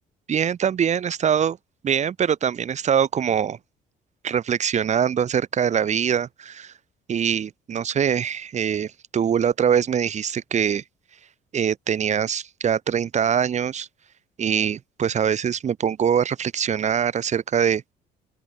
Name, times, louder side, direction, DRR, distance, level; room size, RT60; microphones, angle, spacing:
voice 1, 0.3-1.6 1.8-3.6 4.2-6.7 7.1-10.8 11.5-13.9 14.4-17.8, right 8 dB, 45° right, 2.2 m, -23 dB
open air
cardioid pair, 110°, 17 cm